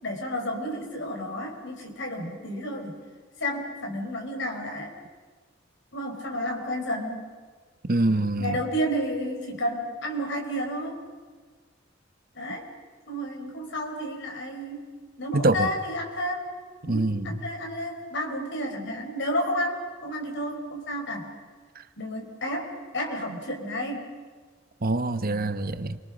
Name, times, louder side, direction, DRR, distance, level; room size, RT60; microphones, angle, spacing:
voice 1, 0.0-3.0 3.4-4.9 5.9-7.2 8.4-11.0 12.3-12.7 13.1-14.9 15.2-16.5 16.9-21.3 22.0-24.1, equal, 65° left, 2 dB, 5.3 m, -31 dB
voice 2, 7.9-8.6 15.3-15.7 16.8-17.5 21.7-21.8 24.8-26.0, right 2 dB, 50° right, 10 dB, 1.2 m, -25 dB
29.0 x 24.5 x 6.4 m, 1.5 s
head